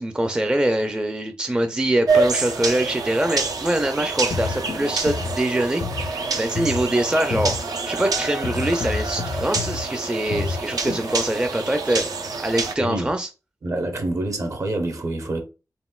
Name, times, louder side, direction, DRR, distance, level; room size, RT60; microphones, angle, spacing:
voice 1, 0.0-7.5 7.9-12.1 12.4-13.3, right 1 dB, 15° right, 0.4 m, -24 dB
sound 1, 2.1-12.7, right 4 dB, 85° right, 0.7 m, -27 dB
sound 2, 4.1-11.1, left 5 dB, 65° left, 0.4 m, -30 dB
voice 2, 12.8-13.1 13.6-15.4, right 2 dB, 55° right, 0.9 m, -27 dB
4.1 x 3.6 x 2.3 m
wide cardioid pair, 105°, 6 cm